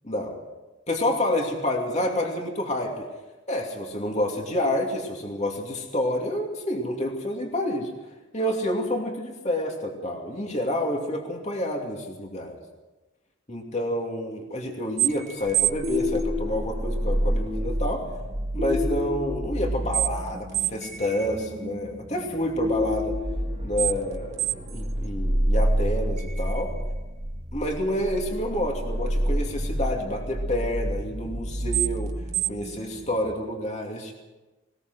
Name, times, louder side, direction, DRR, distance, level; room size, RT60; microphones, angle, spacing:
voice 1, 0.9-3.1 3.5-7.9 8.3-12.6 13.5-18.1 18.5-23.2 23.6-26.7 27.5-32.1 32.5-34.1, left 1 dB, 35° left, 1 dB, 2.7 m, -28 dB
sound 1, 15.0-33.3, right 2 dB, 35° right, 1.7 m, -28 dB
20.5 x 20.5 x 6.3 m, 1.1 s
head